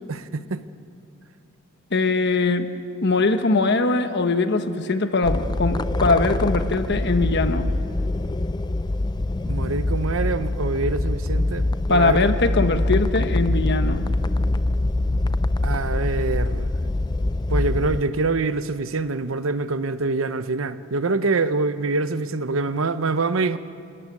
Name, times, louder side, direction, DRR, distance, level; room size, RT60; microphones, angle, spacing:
voice 1, 0.1-0.6 9.5-12.3 15.6-16.7 17.5-23.6, right 3 dB, 80° right, 0.8 m, -25 dB
voice 2, 1.9-2.7 3.0-7.7 11.9-14.1, left 3 dB, 60° left, 1.2 m, -21 dB
sound 1, 5.2-18.0, left 2 dB, 20° left, 0.4 m, -24 dB
28.5 x 13.5 x 9.6 m
head